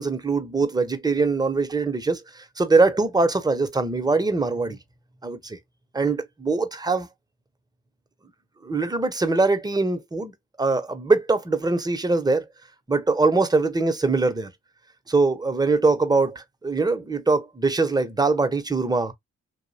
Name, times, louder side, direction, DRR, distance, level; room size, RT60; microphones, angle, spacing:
voice 1, 0.0-4.8 5.2-5.6 5.9-7.1 8.6-10.3 10.6-12.5 12.9-14.5 15.1-19.1, right 3 dB, 10° right, 0.6 m, -22 dB
2.6 x 2.0 x 2.6 m
supercardioid pair, 45°, 34 cm